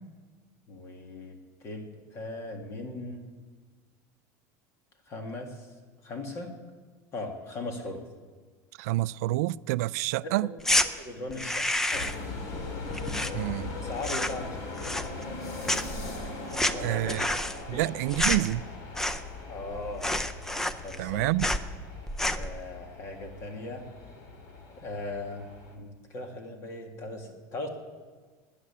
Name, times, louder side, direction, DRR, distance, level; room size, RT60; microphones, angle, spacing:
voice 1, 0.7-3.3 5.1-5.7 6.0-6.5 7.1-8.1 10.2-10.6 11.0-12.1 13.8-15.1 16.7-17.2 17.7-17.9 19.4-20.1 20.8-21.3 22.3-23.8 24.8-25.5 25.7-27.7, left 2 dB, 30° left, 1.9 m, -39 dB
voice 2, 8.8-10.5 13.3-13.7 16.8-17.2 17.7-18.6 21.0-21.5, right 18 dB, 75° right, 0.4 m, -28 dB
sound 1, 10.6-10.9 11.3-12.3 12.5-13.7 14.0-14.5 14.8-15.4 15.6-19.4 19.7-19.8 20.0-21.1 21.4-21.7 22.1-22.5, left 1 dB, 5° left, 0.5 m, -29 dB
sound 2, 11.9-25.8, left 3 dB, 50° left, 2.3 m, -40 dB
14.0 x 9.9 x 9.9 m
cardioid pair, 170°, 9 cm